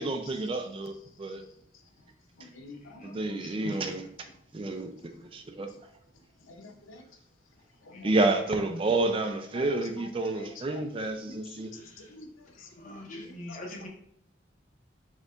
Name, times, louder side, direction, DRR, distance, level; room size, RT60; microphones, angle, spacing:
voice 1, 0.0-1.4 3.0-4.1 4.5-5.7 8.0-11.7, right 2 dB, 25° right, 6 dB, 0.3 m, -29 dB
voice 2, 2.4-3.8 6.5-7.0 7.8-8.1 9.5-9.6 10.3-10.8 11.3-11.6 12.1-12.3 12.6-13.6, left 2 dB, 85° left, 5 dB, 0.6 m, -46 dB
voice 3, 12.6-13.9, left 1 dB, 40° left, 0 dB, 0.9 m, -44 dB
4.2 x 3.8 x 2.4 m, 0.71 s
head